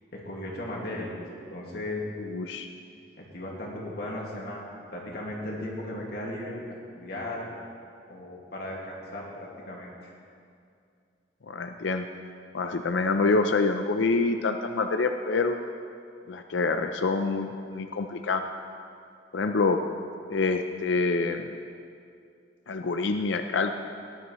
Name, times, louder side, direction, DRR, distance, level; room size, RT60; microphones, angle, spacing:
voice 1, 0.1-1.1 1.5-2.0 3.2-6.5 6.9-7.5 8.1-9.9, left 1 dB, 55° left, -4 dB, 2.0 m, -36 dB
voice 2, 2.2-2.7 11.5-12.1 12.5-15.6 16.3-18.4 19.3-19.8 20.3-21.4 22.7-23.9, left 3 dB, 80° left, 6 dB, 0.5 m, -26 dB
18.5 x 10.5 x 3.1 m, 2.4 s
head